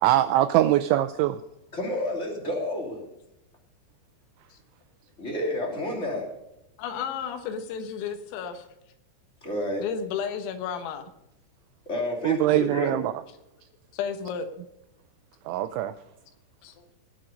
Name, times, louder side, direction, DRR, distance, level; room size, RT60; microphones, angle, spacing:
voice 1, 0.0-1.4 12.2-13.1 15.5-15.9, right 14 dB, 85° right, 11 dB, 2.7 m, -22 dB
voice 2, 1.7-3.0 5.2-6.3 9.4-9.8 11.9-13.0, left 1 dB, 20° left, -1 dB, 1.9 m, -30 dB
voice 3, 6.8-8.7 9.8-11.1 13.9-14.5 16.6-16.9, left 7 dB, 90° left, 7 dB, 4.0 m, -32 dB
20.0 x 7.6 x 5.2 m, 0.89 s
omnidirectional pair, 5.9 m